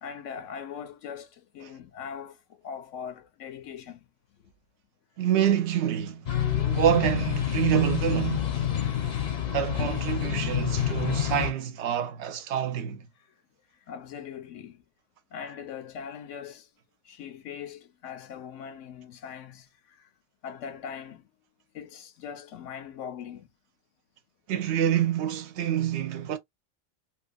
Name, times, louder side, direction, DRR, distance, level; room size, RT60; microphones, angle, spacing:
voice 1, 0.0-4.1 4.4-4.5 13.2-13.3 13.7-14.8 15.3-16.7 17.0-20.1 20.4-21.3 21.7-23.5, left 7 dB, 85° left, 1.0 m, -41 dB
voice 2, 5.2-6.3 6.6-8.6 9.5-13.1 24.5-26.4, right 10 dB, 70° right, 0.8 m, -27 dB
sound 1, 6.3-11.5, left 10 dB, 45° left, 0.6 m, -28 dB
2.8 x 2.3 x 2.3 m
omnidirectional pair, 1.2 m